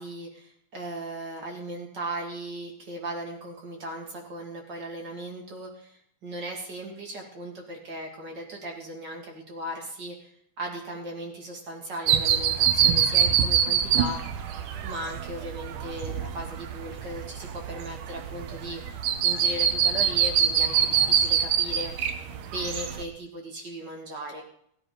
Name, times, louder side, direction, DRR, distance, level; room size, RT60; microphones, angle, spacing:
voice 1, 0.0-10.3 10.6-14.4 14.8-22.1 22.4-24.4, right 1 dB, 35° right, 0 dB, 2.5 m, -37 dB
sound 1, 12.1-23.0, right 8 dB, 75° right, 2.5 m, -25 dB
16.5 x 11.0 x 3.9 m, 0.68 s
omnidirectional pair, 3.9 m